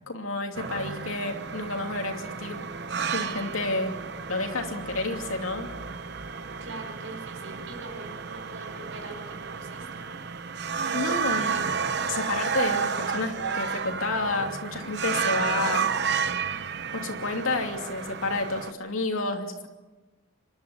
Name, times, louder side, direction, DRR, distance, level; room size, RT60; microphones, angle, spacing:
voice 1, 0.1-2.7 3.1-4.0 4.3-5.7 10.9-11.7 12.1-15.9 16.9-19.7, left 2 dB, 90° left, 3 dB, 2.8 m, -30 dB
sound 1, 0.5-18.7, right 6 dB, 50° right, 0.9 m, -32 dB
voice 2, 6.6-10.2, right 2 dB, 75° right, 4 dB, 5.4 m, -43 dB
26.0 x 11.5 x 9.7 m, 1.2 s
head